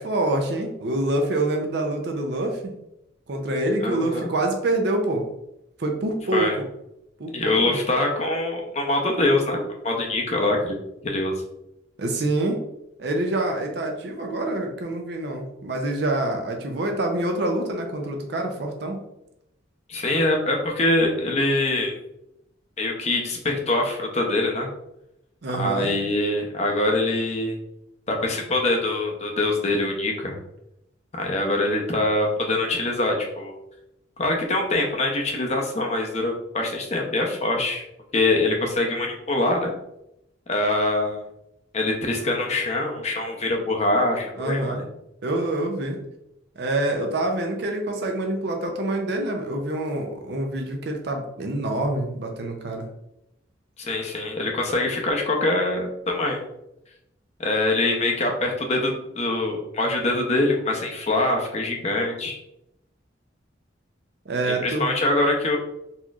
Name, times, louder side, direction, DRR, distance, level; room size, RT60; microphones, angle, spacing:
voice 1, 0.0-2.8 3.3-5.3 5.8-6.5 7.2-7.8 12.0-12.6 13.0-19.1 25.4-26.0 44.4-44.9 45.2-46.0 46.6-52.9 64.3-64.9, right 2 dB, 60° right, 3 dB, 0.6 m, -26 dB
voice 2, 3.8-4.3 6.3-6.5 7.3-10.8 11.0-11.4 19.9-21.9 22.8-24.7 25.5-27.6 28.1-30.4 31.2-33.6 34.2-37.8 38.1-39.7 40.5-41.2 41.7-44.8 53.8-56.4 57.4-62.4 64.5-65.6, left 2 dB, 35° left, 1 dB, 0.7 m, -24 dB
4.1 x 2.9 x 2.4 m, 0.83 s
head